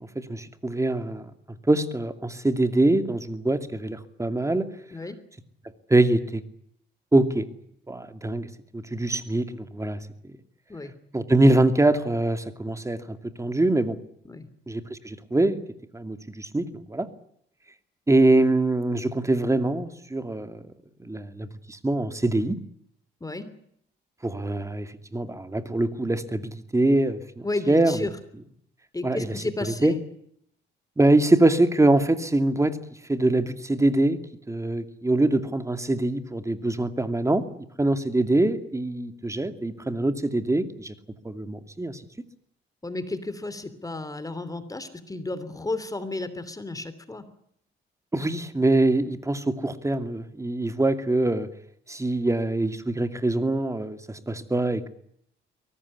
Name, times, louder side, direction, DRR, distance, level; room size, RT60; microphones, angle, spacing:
voice 1, 0.2-1.3 1.7-4.7 5.9-6.4 7.1-7.5 7.9-8.5 8.7-10.0 11.1-14.0 14.7-15.6 15.9-17.1 18.1-20.6 21.0-22.6 24.2-28.0 29.0-29.3 29.8-29.9 31.0-32.8 33.1-34.2 34.5-37.4 37.8-40.9 41.2-42.0 48.1-51.5 51.9-54.9, right 2 dB, 15° right, 9 dB, 2.5 m, -24 dB
voice 2, 27.4-28.1 28.9-30.0 42.8-47.2, left 2 dB, 15° left, 13 dB, 3.0 m, -32 dB
23.5 x 18.5 x 9.8 m, 0.71 s
cardioid pair, 90°, 20 cm